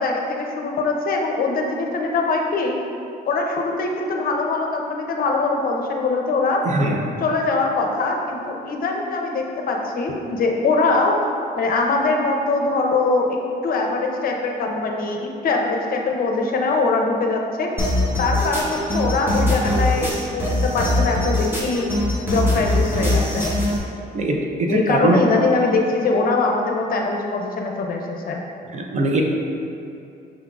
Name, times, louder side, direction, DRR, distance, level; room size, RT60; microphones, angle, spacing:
voice 1, 0.0-2.7 3.3-6.6 7.2-11.1 11.6-13.4 13.6-17.7 18.2-21.9 22.2-23.5 24.7-28.4, left 3 dB, 55° left, 1 dB, 0.6 m, -22 dB
voice 2, 6.6-7.0 24.1-25.2 28.7-29.2, right 2 dB, 40° right, 1 dB, 0.6 m, -21 dB
sound 1, 17.8-23.8, left 1 dB, 10° right, 1.0 m, -21 dB
6.2 x 3.6 x 2.4 m, 2.8 s
cardioid pair, 105°, 18 cm